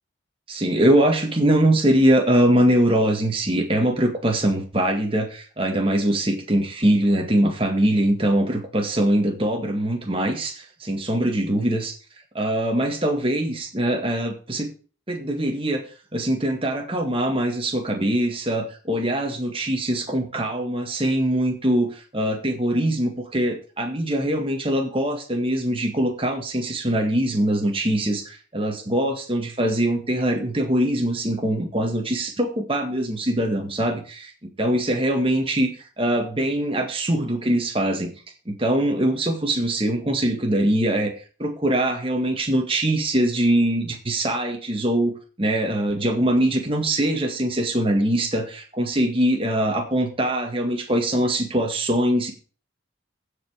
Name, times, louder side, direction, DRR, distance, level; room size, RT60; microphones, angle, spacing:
voice 1, 0.5-11.9 12.4-14.7 15.1-15.8 16.1-34.3 34.6-35.7 36.0-38.1 38.5-41.1 41.4-52.3, right 1 dB, 30° right, 3 dB, 1.9 m, -22 dB
15.5 x 5.4 x 5.0 m, 0.38 s
head